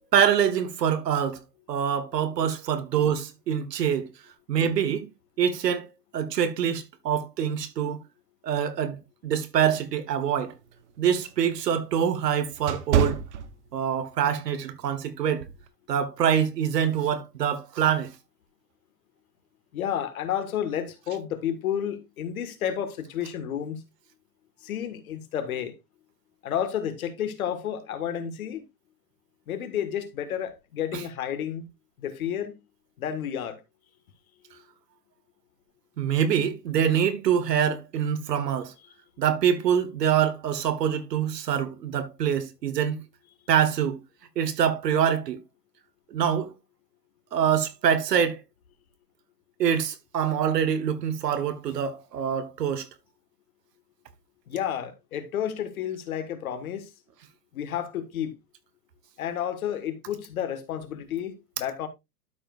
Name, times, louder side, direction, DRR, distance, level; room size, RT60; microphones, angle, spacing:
voice 1, 0.1-1.4 1.7-4.1 4.5-5.1 5.4-5.9 6.1-8.0 8.4-10.5 11.0-13.2 13.7-15.5 15.9-18.1 36.0-38.7 39.2-43.0 43.5-44.0 44.3-45.4 46.1-46.5 47.3-48.4 49.6-52.9, right 8 dB, 75° right, 1.6 m, -25 dB
sound 1, 10.4-14.1 14.6-14.8 15.4-15.7, right 8 dB, 45° right, 0.9 m, -29 dB
voice 2, 19.7-23.8 24.6-25.7 26.4-28.6 29.5-31.7 32.0-32.6 33.0-33.6 34.5-34.6 54.5-56.9 57.5-58.4 59.2-61.9, left 9 dB, 60° left, 1.8 m, -31 dB
12.5 x 5.2 x 2.5 m
hypercardioid pair, 165°, 49 cm